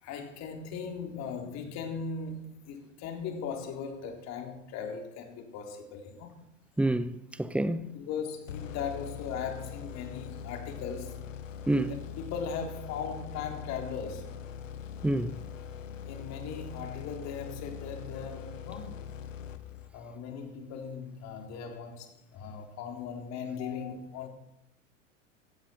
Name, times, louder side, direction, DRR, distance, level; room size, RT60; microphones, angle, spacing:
voice 1, 0.0-6.4 7.9-11.2 11.9-14.4 16.1-19.0 19.9-24.3, left 6 dB, 45° left, 3.9 m, -38 dB
voice 2, 6.8-7.9 11.7-11.9 15.0-15.3, right 1 dB, 5° right, 0.8 m, -28 dB
sound 1, 8.5-20.1, left 8 dB, 75° left, 1.5 m, -42 dB
16.0 x 15.5 x 4.6 m
figure-of-eight pair, 90°, 39 cm